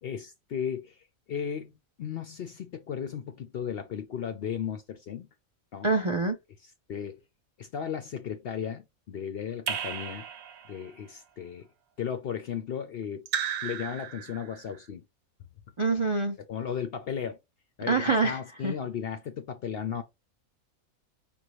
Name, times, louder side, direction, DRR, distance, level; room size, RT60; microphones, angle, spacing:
voice 1, 0.0-5.3 5.7-5.9 6.9-7.2 7.6-10.3 10.7-11.7 12.0-13.3 13.6-15.1 16.5-17.4 17.8-20.0, left 8 dB, 60° left, 0.6 m, -35 dB
voice 2, 5.8-6.4 15.8-16.4 17.9-18.7, right 3 dB, 50° right, 0.3 m, -26 dB
Raindrop / Drip, 9.7-10.9 13.3-14.6, right 8 dB, 75° right, 1.1 m, -34 dB
5.5 x 2.6 x 3.0 m
omnidirectional pair, 1.4 m